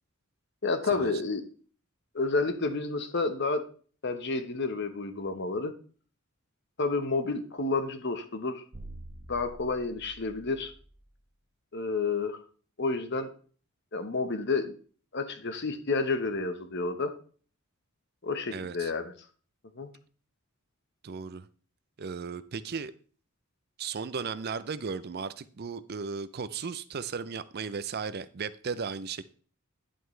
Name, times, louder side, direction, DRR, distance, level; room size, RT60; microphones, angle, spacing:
voice 1, 0.6-1.4 2.1-3.7 4.0-5.7 6.8-8.6 9.3-10.7 11.7-12.4 12.8-13.3 13.9-14.7 15.1-17.1 18.2-19.1 19.8-19.9, left 3 dB, 55° left, 1.1 m, -30 dB
sound 1, 8.7-11.2, right 1 dB, 25° right, 1.0 m, -47 dB
voice 2, 18.5-18.9 21.0-21.5 22.0-22.9 23.8-29.2, right 5 dB, 50° right, 0.5 m, -36 dB
10.0 x 7.8 x 3.2 m
head